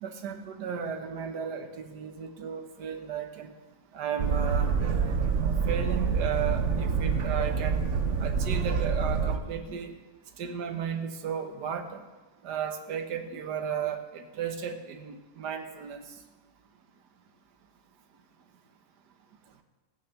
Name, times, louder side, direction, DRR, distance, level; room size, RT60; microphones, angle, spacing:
voice 1, 0.0-3.5 3.9-4.7 5.7-7.8 8.2-9.9 10.4-12.0 12.4-16.0, right 7 dB, 70° right, 6 dB, 1.7 m, -34 dB
Boat Water vehicle, 4.2-9.4, right 5 dB, 50° right, 1.1 m, -27 dB
15.5 x 9.2 x 6.7 m, 1.2 s
omnidirectional pair, 1.9 m